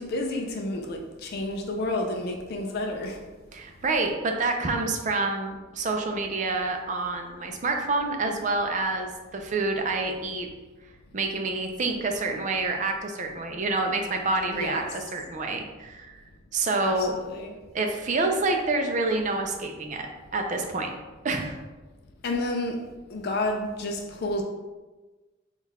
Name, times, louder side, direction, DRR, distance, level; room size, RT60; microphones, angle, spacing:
voice 1, 0.0-3.2 14.5-15.0 16.8-17.5 22.2-24.4, left 2 dB, 50° left, 2 dB, 0.4 m, -30 dB
voice 2, 3.5-10.5 11.1-16.2 16.5-17.1 17.7-20.1 20.3-20.9 21.2-21.6, right 3 dB, 40° right, 4 dB, 0.4 m, -27 dB
3.8 x 2.4 x 4.1 m, 1.2 s
head